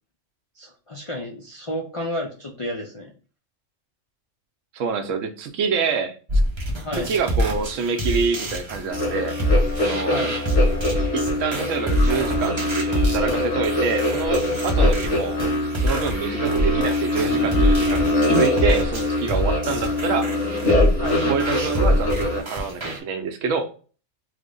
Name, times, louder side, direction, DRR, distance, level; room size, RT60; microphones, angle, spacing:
voice 1, 0.6-3.1 6.8-7.1 10.1-10.4 14.8-15.0 21.0-21.3, left 1 dB, 50° left, -2 dB, 0.3 m, -31 dB
voice 2, 4.7-6.2 7.0-9.3 9.8-10.2 11.1-15.4 15.7-20.3 21.3-23.7, right 5 dB, 85° right, 7 dB, 1.0 m, -26 dB
sound 1, 6.3-23.0, equal, 35° right, 0.5 m, -25 dB
sound 2, 8.9-22.4, left 1 dB, 35° left, 1.3 m, -24 dB
3.3 x 2.1 x 3.6 m, 0.38 s
omnidirectional pair, 1.3 m